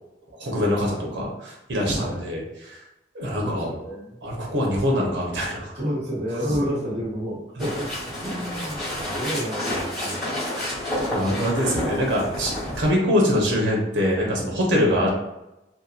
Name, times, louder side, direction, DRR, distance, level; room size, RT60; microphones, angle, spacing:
voice 1, 0.4-2.8 3.1-3.7 4.2-5.7 7.6-7.7 11.1-15.1, equal, 85° right, -2 dB, 0.8 m, -24 dB
voice 2, 3.4-4.2 4.7-4.9 5.7-7.9 8.2-10.3 14.9-15.0, equal, 35° right, -8 dB, 1.3 m, -31 dB
sound 1, 7.6-12.9, left 1 dB, ahead, 1.1 m, -29 dB
2.8 x 2.2 x 2.4 m, 0.95 s
head